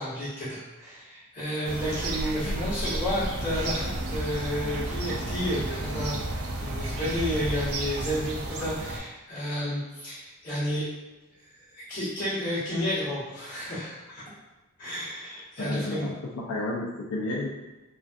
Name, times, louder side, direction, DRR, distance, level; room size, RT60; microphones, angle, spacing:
voice 1, 0.0-10.9 11.7-14.2 14.8-16.1, equal, 45° left, -17 dB, 1.0 m, -31 dB
sound 1, 1.6-9.0, right 1 dB, 75° right, 0.4 m, -32 dB
voice 2, 15.6-17.5, left 2 dB, 80° left, -4 dB, 0.4 m, -32 dB
2.4 x 2.3 x 2.5 m, 1.1 s
head